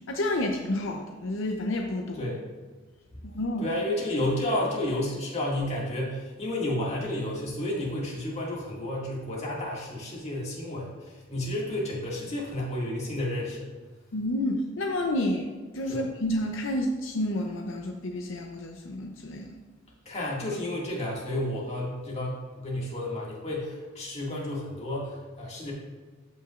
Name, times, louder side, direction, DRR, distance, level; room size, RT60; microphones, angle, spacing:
voice 1, 0.1-2.3 3.3-3.6 14.1-15.5 15.7-19.6, left 1 dB, 70° left, 3 dB, 0.6 m, -30 dB
voice 2, 3.6-13.7 15.9-16.0 20.1-25.7, left 1 dB, 35° left, -4 dB, 2.0 m, -31 dB
13.0 x 5.8 x 2.4 m, 1.4 s
head